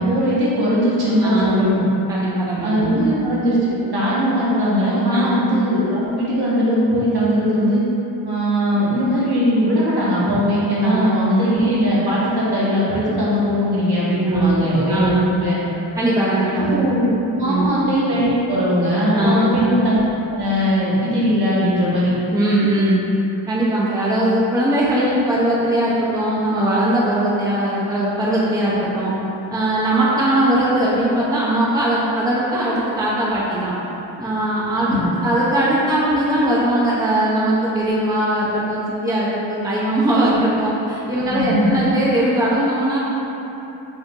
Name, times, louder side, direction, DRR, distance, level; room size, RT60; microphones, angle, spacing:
voice 1, 0.0-1.9 2.6-7.8 8.2-15.6 16.5-20.0 20.3-22.1 34.8-35.1 41.2-41.8, equal, 55° right, -8 dB, 1.3 m, -19 dB
voice 2, 1.0-1.5 2.1-3.1 5.1-5.5 10.8-11.2 14.2-15.4 16.0-16.9 17.4-17.7 19.1-19.7 22.3-23.0 23.5-29.1 29.5-33.7 34.2-43.0, right 1 dB, 10° right, -7 dB, 0.7 m, -20 dB
5.3 x 2.6 x 3.7 m, 3.0 s
wide cardioid pair, 90°, 47 cm